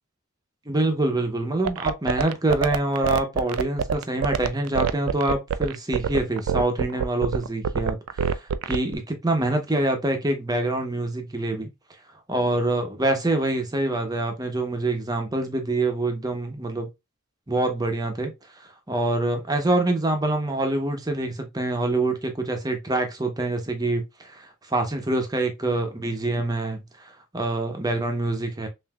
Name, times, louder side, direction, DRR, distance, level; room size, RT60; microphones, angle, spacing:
voice 1, 0.7-11.7 12.3-16.9 17.5-18.3 18.9-28.7, right 2 dB, 20° right, 0.8 m, -25 dB
sound 1, 1.6-8.9, right 7 dB, 80° right, 0.4 m, -24 dB
5.5 x 2.6 x 2.2 m
head